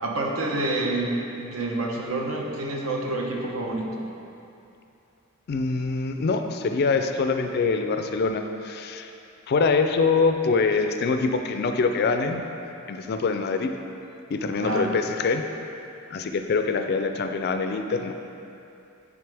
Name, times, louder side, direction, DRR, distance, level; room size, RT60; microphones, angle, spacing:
voice 1, 0.0-4.1 14.6-14.9, right 2 dB, 70° right, -1 dB, 0.9 m, -28 dB
voice 2, 5.5-9.1 9.5-12.4 12.9-13.7 14.3-15.4 16.1-18.1, left 4 dB, 50° left, 6 dB, 0.3 m, -24 dB
10.0 x 3.6 x 3.4 m, 2.7 s
head